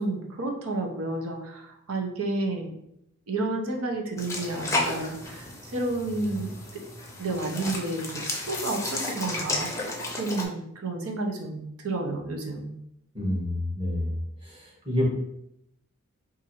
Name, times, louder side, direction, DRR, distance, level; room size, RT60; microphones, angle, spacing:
voice 1, 0.0-2.7 3.3-6.8 7.2-9.8 10.1-12.7, right 2 dB, 90° right, 2 dB, 0.7 m, -31 dB
sound 1, 4.2-10.4, left 2 dB, 15° left, 0.5 m, -33 dB
voice 2, 13.1-14.2 14.4-15.0, left 1 dB, 25° right, -4 dB, 1.0 m, -28 dB
2.6 x 2.5 x 4.2 m, 0.77 s
head